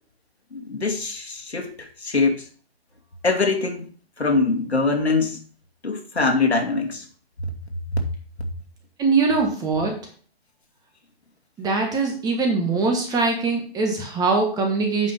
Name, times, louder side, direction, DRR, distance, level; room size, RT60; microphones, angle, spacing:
voice 1, 0.5-2.4 3.2-3.9 4.2-5.4 5.8-7.1 7.4-7.5 7.9-8.1, left 3 dB, 85° left, 3 dB, 2.4 m, -23 dB
voice 2, 9.0-10.0 11.6-15.1, right 4 dB, 10° right, 3 dB, 1.4 m, -22 dB
8.9 x 5.4 x 5.4 m, 0.42 s
figure-of-eight pair, 135°, 32 cm